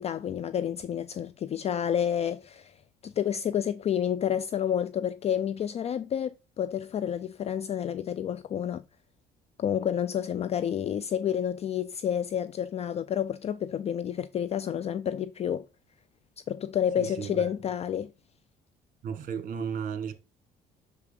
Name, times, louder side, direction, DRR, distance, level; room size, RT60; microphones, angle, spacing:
voice 1, 0.0-8.8 9.6-15.7 16.5-18.1, left 9 dB, 40° left, 0.4 m, -29 dB
voice 2, 17.0-17.4 19.0-20.1, right 7 dB, 55° right, 1.6 m, -34 dB
6.8 x 4.9 x 3.4 m
cardioid pair, 110°, 17 cm